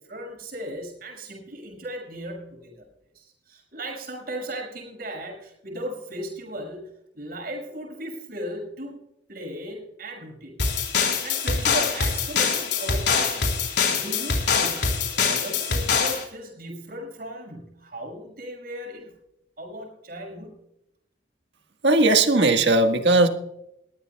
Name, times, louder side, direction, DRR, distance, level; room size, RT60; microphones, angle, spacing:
voice 1, 0.0-2.9 3.1-9.0 9.3-10.6 11.2-19.2 19.6-20.6, right 1 dB, 60° right, 0 dB, 6.1 m, -37 dB
sound 1, 10.6-16.2, left 5 dB, 75° left, 3.9 m, -24 dB
voice 2, 21.8-23.3, right 2 dB, 85° right, 6 dB, 1.6 m, -18 dB
21.5 x 15.0 x 2.3 m, 0.82 s
head